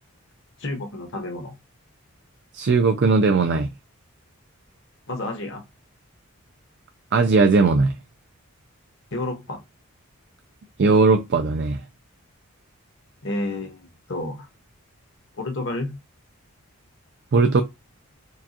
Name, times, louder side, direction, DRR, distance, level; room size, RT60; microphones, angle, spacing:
voice 1, 0.6-1.5 5.1-5.6 9.1-9.6 13.2-14.5 15.4-15.9, left 2 dB, 55° left, 1.1 m, -30 dB
voice 2, 2.5-3.7 7.1-7.9 10.8-11.8 17.3-17.6, right 4 dB, 50° right, 0.4 m, -18 dB
4.5 x 2.3 x 2.8 m
head